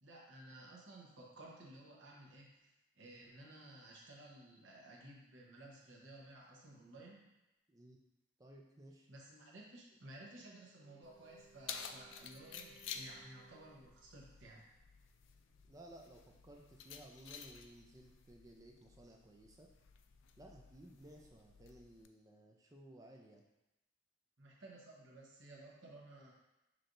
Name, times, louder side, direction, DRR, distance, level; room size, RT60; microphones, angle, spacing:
voice 1, 0.0-7.4 9.1-14.7 24.4-26.3, right 1 dB, 80° right, -3 dB, 1.0 m, -56 dB
voice 2, 7.7-8.0 8.4-9.1 15.6-19.7 20.4-23.4, right 1 dB, 20° right, 1 dB, 0.4 m, -58 dB
Wind instrument woodwind instrument, 10.7-14.2, right 4 dB, 30° left, 0.8 m, -65 dB
Keys jangling, 11.0-22.1, left 7 dB, 80° left, 0.3 m, -53 dB
5.9 x 3.3 x 2.6 m, 0.96 s
head